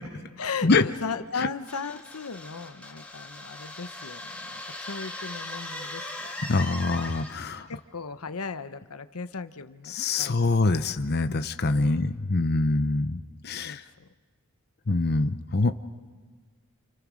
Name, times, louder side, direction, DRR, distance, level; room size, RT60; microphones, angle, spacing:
voice 1, 0.4-6.6 7.7-11.0 11.7-12.1 13.6-14.1, left 5 dB, 80° left, 11 dB, 1.0 m, -37 dB
sound 1, 1.7-7.6, left 2 dB, 5° left, 3.3 m, -39 dB
voice 2, 6.5-7.7 9.9-13.8 14.9-15.7, left 3 dB, 45° left, 10 dB, 0.8 m, -25 dB
29.5 x 29.0 x 6.3 m, 1.5 s
head